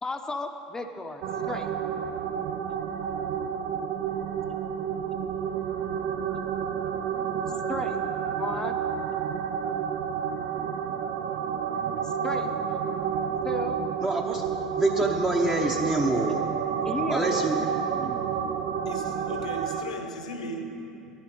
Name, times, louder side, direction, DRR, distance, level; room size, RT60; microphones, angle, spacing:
voice 1, 0.0-1.7 7.7-8.0 8.4-8.8 12.0-12.5 13.4-13.8 16.8-17.7, left 2 dB, 15° left, 6 dB, 0.7 m, -34 dB
sound 1, 1.2-19.8, right 7 dB, 60° right, 0.6 m, -30 dB
voice 2, 14.0-14.4 14.8-16.4 16.7-16.8 17.1-18.3, right 2 dB, 20° right, 0 dB, 0.9 m, -27 dB
voice 3, 18.8-21.1, left 1 dB, 80° left, 5 dB, 1.0 m, -37 dB
11.0 x 10.5 x 5.3 m, 2.7 s
figure-of-eight pair, 70°, 4 cm